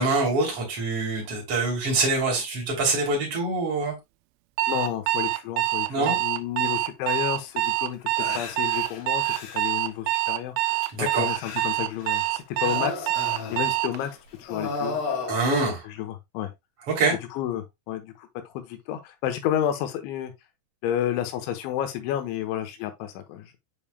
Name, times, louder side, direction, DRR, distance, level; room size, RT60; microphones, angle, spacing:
voice 1, 0.0-4.0 5.9-6.1 10.9-11.3 15.3-15.8 16.9-17.1, right 3 dB, 35° right, 3.3 m, -25 dB
Alarm, 4.6-14.0, right 18 dB, 85° right, 2.9 m, -26 dB
voice 2, 4.7-13.1 13.5-14.1 14.4-15.0 15.8-16.5 17.3-20.3 20.8-23.6, left 11 dB, 80° left, 3.0 m, -31 dB
sound 1, 7.1-7.2 7.6-7.7 8.2-9.8 10.8-12.3 12.6-14.1 14.4-15.4, left 4 dB, 65° left, 2.5 m, -34 dB
8.3 x 5.4 x 2.2 m
omnidirectional pair, 5.8 m